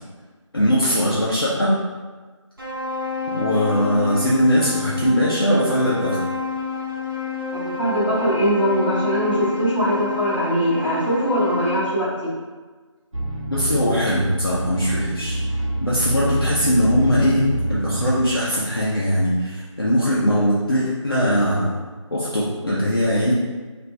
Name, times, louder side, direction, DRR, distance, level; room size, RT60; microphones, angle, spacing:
voice 1, 0.5-1.8 3.3-6.2 13.5-15.4 15.8-21.7 22.1-23.3, equal, 45° left, -8 dB, 0.6 m, -20 dB
sound 1, 2.6-11.7, left 4 dB, 45° right, 0.5 m, -29 dB
voice 2, 7.5-12.1, equal, 20° left, -14 dB, 1.0 m, -21 dB
sound 2, 13.1-18.3, right 1 dB, 80° right, 0.8 m, -26 dB
2.7 x 2.5 x 3.2 m, 1.4 s
figure-of-eight pair, 175°, 16 cm